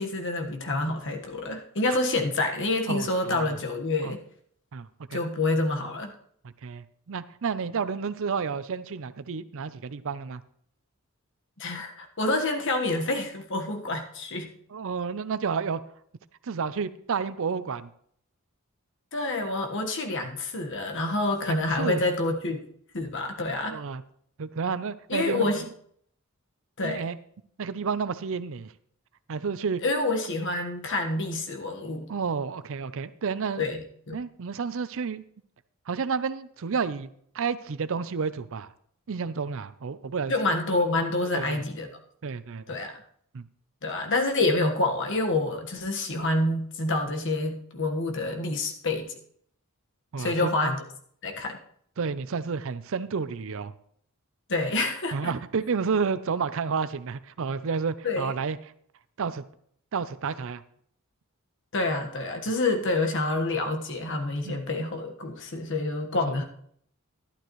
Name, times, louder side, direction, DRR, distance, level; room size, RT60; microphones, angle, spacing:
voice 1, 0.0-4.2 5.1-6.1 11.6-14.5 19.1-22.6 22.9-23.8 25.1-25.7 26.8-27.1 29.8-32.1 33.6-34.2 40.3-41.9 42.7-43.0 43.8-49.1 50.2-50.8 51.2-51.6 54.5-55.3 58.0-58.3 61.7-66.4, left 2 dB, 60° left, 4 dB, 1.4 m, -27 dB
voice 2, 2.9-3.6 4.0-4.2 4.7-5.2 6.6-10.4 14.7-15.8 16.4-17.9 21.5-22.0 23.7-24.0 24.4-25.5 26.8-27.2 27.6-28.7 29.3-29.8 32.1-33.6 34.1-35.2 35.9-37.1 37.3-38.7 39.1-40.3 41.3-41.6 42.2-42.7 43.3-43.4 50.1-50.5 52.0-53.7 55.1-58.6 59.2-59.4 59.9-60.6 64.4-64.6 66.3-66.4, right 5 dB, 65° right, 14 dB, 0.5 m, -30 dB
11.5 x 11.5 x 3.1 m, 0.64 s
head